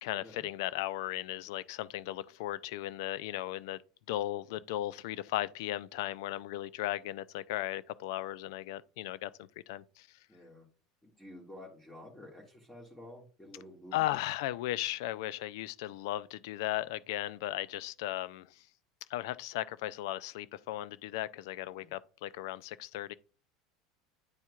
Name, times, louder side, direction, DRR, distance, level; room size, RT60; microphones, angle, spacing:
voice 1, 0.0-3.8 4.1-10.1 13.9-18.6 19.1-23.1, left 14 dB, 70° left, 0.4 m, -36 dB
voice 2, 10.3-10.7 11.0-14.1 21.7-21.9, left 1 dB, 10° left, 1.8 m, -51 dB
9.5 x 4.4 x 2.4 m
hypercardioid pair, 85°, 2 cm